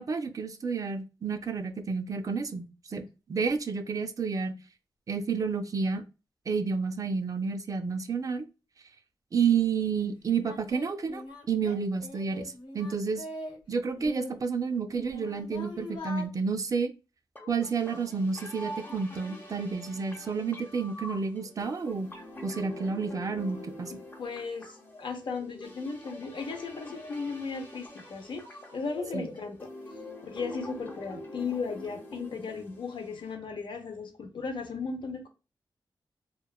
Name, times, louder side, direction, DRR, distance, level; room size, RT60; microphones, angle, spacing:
voice 1, 0.0-4.5 5.1-6.0 6.5-8.4 9.3-13.2 13.7-16.9 17.5-22.1 22.4-23.9 29.1-29.3, right 5 dB, 45° right, 0.3 m, -30 dB
Singing, 9.8-9.9 10.4-13.6 14.0-16.3, left 1 dB, 90° left, 1.0 m, -42 dB
sound 1, 17.4-33.3, left 1 dB, 25° left, 0.6 m, -44 dB
voice 2, 24.2-28.4 28.7-29.7 30.2-35.3, left 4 dB, 70° left, 0.6 m, -36 dB
2.9 x 2.1 x 2.3 m
wide cardioid pair, 110°, 8 cm